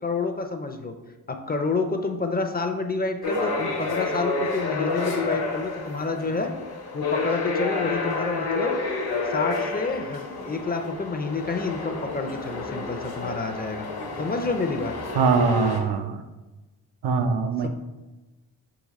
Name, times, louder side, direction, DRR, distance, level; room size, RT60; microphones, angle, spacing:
voice 1, 0.0-0.9 1.3-6.5 6.9-8.8 9.3-13.9 14.2-14.9 17.6-17.7, left 3 dB, 25° left, 5 dB, 0.5 m, -28 dB
sound 1, 3.2-15.8, left 3 dB, 70° left, 0.9 m, -30 dB
voice 2, 15.2-16.2 17.0-17.7, right 5 dB, 75° right, 6 dB, 0.5 m, -22 dB
3.8 x 2.8 x 4.1 m, 1.1 s
cardioid pair, 50°, 40 cm